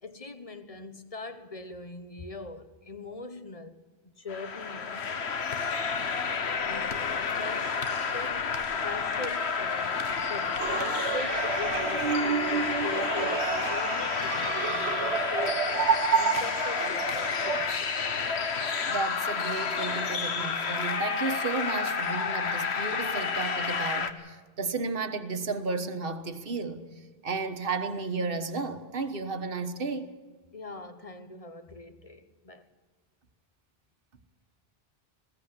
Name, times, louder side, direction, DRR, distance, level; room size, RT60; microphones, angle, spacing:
voice 1, 0.0-3.8 4.0-5.0 6.6-15.7 16.1-18.1 30.5-32.7, left 3 dB, 35° left, 1.2 m, -42 dB
sound 1, 4.3-24.1, left 5 dB, 90° left, 1.4 m, -30 dB
sound 2, 10.6-17.7, right 6 dB, 85° right, 1.2 m, -30 dB
voice 2, 18.9-26.9 27.2-30.1, right 4 dB, 60° right, 1.5 m, -33 dB
21.0 x 16.5 x 8.2 m
omnidirectional pair, 1.1 m